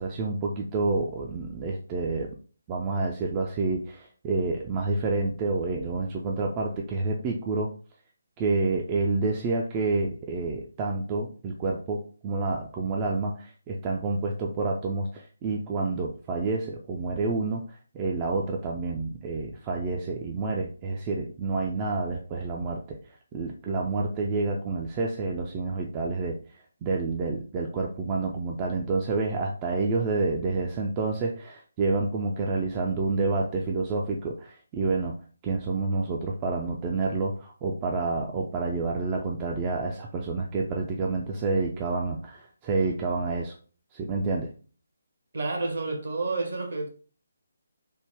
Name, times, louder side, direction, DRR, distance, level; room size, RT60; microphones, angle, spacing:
voice 1, 0.0-2.3 2.7-7.7 8.4-23.0 23.3-26.4 26.8-35.1 35.4-43.5 43.9-44.5, right 3 dB, 20° right, 0.3 m, -28 dB
voice 2, 45.3-46.9, right 3 dB, 55° right, 0.9 m, -29 dB
3.4 x 2.1 x 3.3 m
figure-of-eight pair, 145°, 0 cm